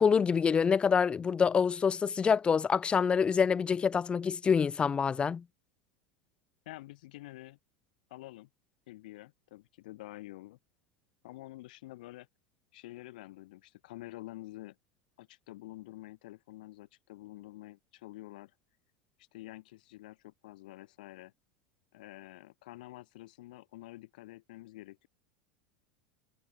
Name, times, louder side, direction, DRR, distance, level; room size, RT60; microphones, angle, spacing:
voice 1, 0.0-5.4, left 6 dB, 20° left, 0.6 m, -26 dB
voice 2, 6.6-7.6 8.1-8.5 8.9-10.6 11.2-12.3 12.7-14.8 15.2-18.5 19.2-21.3 21.9-25.1, left 18 dB, 75° left, 3.2 m, -48 dB
hypercardioid pair, 105°, 5 cm